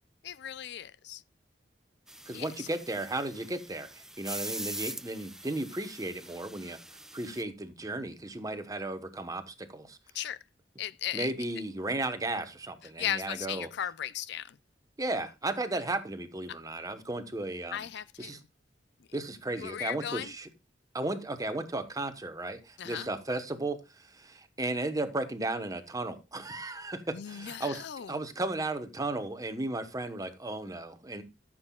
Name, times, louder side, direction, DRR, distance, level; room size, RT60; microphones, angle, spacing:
voice 1, 0.2-1.2 2.3-2.7 10.1-10.4 10.8-11.3 13.0-14.6 16.5-16.6 17.7-18.4 19.6-20.3 22.8-23.1 27.1-28.2, left 10 dB, 65° left, 0.4 m, -37 dB
sound 1, 2.1-7.4, right 1 dB, 5° right, 0.4 m, -43 dB
voice 2, 2.3-6.8 7.1-10.0 11.1-13.7 15.0-17.9 18.2-18.4 19.1-20.5 20.9-31.2, right 2 dB, 20° right, 1.0 m, -35 dB
14.0 x 7.5 x 2.3 m
head